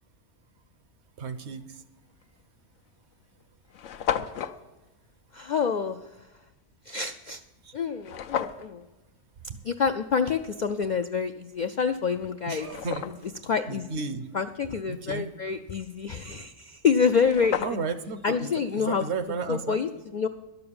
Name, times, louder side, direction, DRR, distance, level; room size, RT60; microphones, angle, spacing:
voice 1, 1.2-1.8 7.6-7.7 9.5-9.6 12.5-13.1 13.7-14.3 14.9-15.3 17.6-19.8, right 4 dB, 65° right, 11 dB, 1.0 m, -33 dB
sound 1, 2.2-2.4 3.1-3.2 3.4-3.5 3.7-4.6 8.0-8.7 11.6-11.7 12.2-13.4 16.7-16.8 17.1-18.1, left 9 dB, 90° left, 1.0 m, -32 dB
voice 2, 5.3-6.0 6.9-7.4 7.7-8.8 9.6-12.7 13.4-14.0 14.3-17.8 18.2-19.0 19.5-20.3, left 6 dB, 65° left, 7 dB, 0.4 m, -27 dB
11.5 x 6.9 x 8.6 m, 1.1 s
omnidirectional pair, 1.3 m